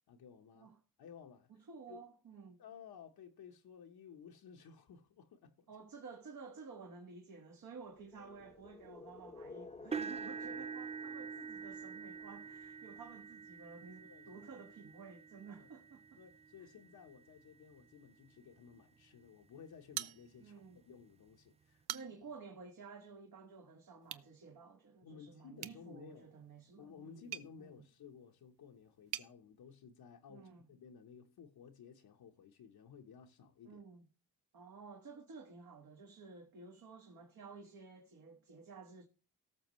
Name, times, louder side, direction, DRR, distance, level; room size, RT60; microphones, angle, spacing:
voice 1, 0.1-0.7 1.0-1.5 1.9-2.0 2.6-5.7 8.2-8.3 10.1-10.6 14.0-14.5 15.6-15.7 16.2-21.8 25.0-26.3 26.8-33.8, left 6 dB, 70° left, 1.2 m, -56 dB
voice 2, 1.5-2.6 5.7-16.2 20.4-20.8 21.9-27.3 27.6-27.8 30.3-30.6 33.6-34.0 34.5-39.0, right 4 dB, 60° right, 1.6 m, -53 dB
sound 1, 8.0-12.9, left 3 dB, 15° left, 0.9 m, -55 dB
sound 2, 9.9-17.9 18.6-18.8 19.3-19.4 20.7-20.8, right 6 dB, 15° right, 0.4 m, -46 dB
sound 3, 19.9-20.7 21.1-21.2 21.7-22.4 24.0-24.3 25.6-29.3, right 13 dB, 75° right, 0.6 m, -47 dB
18.5 x 6.4 x 3.1 m
cardioid pair, 105°, 38 cm